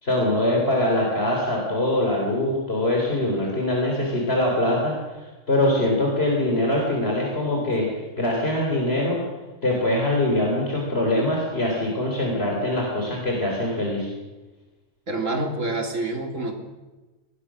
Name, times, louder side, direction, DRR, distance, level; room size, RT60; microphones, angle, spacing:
voice 1, 0.0-7.9 8.2-9.2 9.6-14.1, left 1 dB, 50° left, -1 dB, 4.2 m, -23 dB
voice 2, 15.1-16.5, right 2 dB, 80° right, 3 dB, 3.4 m, -27 dB
23.5 x 19.5 x 6.3 m, 1.1 s
omnidirectional pair, 1.3 m